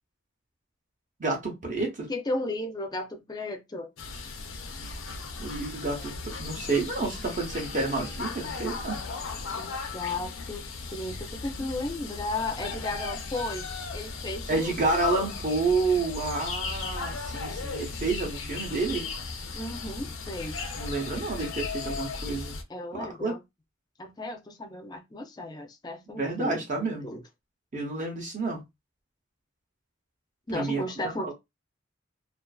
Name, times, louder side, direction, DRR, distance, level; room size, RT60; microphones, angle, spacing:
voice 1, 1.2-2.1 5.4-6.1 6.4-9.0 14.5-19.1 20.7-22.6 22.9-23.3 26.1-27.1 27.7-28.6 30.5-31.3, right 3 dB, 40° right, 0.7 m, -29 dB
voice 2, 2.1-3.9 9.6-13.6 13.9-14.7 19.5-20.6 22.7-23.4 24.0-26.6 27.0-27.2 30.5-31.3, left 2 dB, 20° left, 0.5 m, -34 dB
sound 1, 4.0-22.6, left 4 dB, 80° left, 0.5 m, -36 dB
2.4 x 2.4 x 2.3 m
head